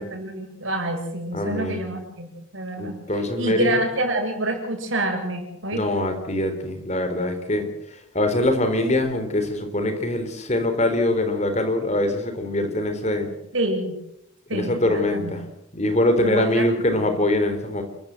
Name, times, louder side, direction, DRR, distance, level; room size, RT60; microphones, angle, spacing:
voice 1, 0.0-2.3 2.5-3.0 3.4-5.9 13.5-13.9 14.5-15.3 16.2-16.6 16.9-17.2, right 1 dB, 70° right, 4 dB, 6.9 m, -27 dB
voice 2, 1.3-1.8 2.8-3.7 5.7-7.7 8.1-13.3 14.5-15.4 15.7-17.8, left 1 dB, 35° left, 7 dB, 3.7 m, -23 dB
29.0 x 15.5 x 7.7 m, 0.79 s
head